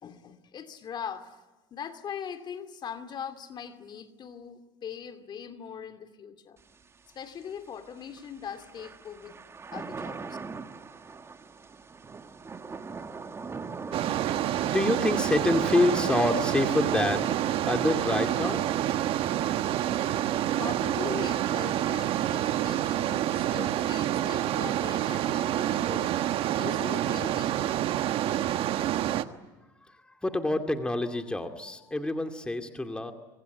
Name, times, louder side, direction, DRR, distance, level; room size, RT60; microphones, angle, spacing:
voice 1, 0.0-1.4 1.7-6.6 7.1-9.4 9.7-10.4 20.6-26.2 26.6-27.8, left 8 dB, 40° left, 9 dB, 2.5 m, -41 dB
Thunder / Rain, 6.6-24.8, right 4 dB, 20° right, 2.1 m, -44 dB
sound 1, 13.9-29.2, right 12 dB, 50° right, 1.4 m, -28 dB
voice 2, 14.6-17.3 17.6-18.9 29.9-33.1, left 2 dB, 10° left, 6 dB, 2.3 m, -27 dB
25.0 x 25.0 x 9.5 m, 1.1 s
supercardioid pair, 105°, 12 cm